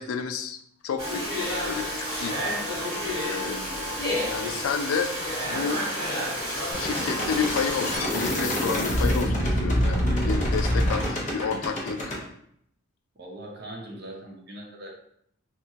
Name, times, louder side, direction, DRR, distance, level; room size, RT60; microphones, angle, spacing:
voice 1, 0.0-2.4 3.2-3.9 4.2-5.1 5.5-5.8 6.8-12.1, left 6 dB, 85° left, 8 dB, 0.3 m, -31 dB
Domestic sounds home sounds, 1.0-8.0, equal, 25° right, 1.3 m, -30 dB
voice 2, 3.4-4.1 13.1-14.9, right 1 dB, 50° right, 0 dB, 0.6 m, -41 dB
sound 1, 6.7-12.2, equal, 35° left, 0.6 m, -26 dB
2.8 x 2.3 x 2.7 m, 0.70 s
head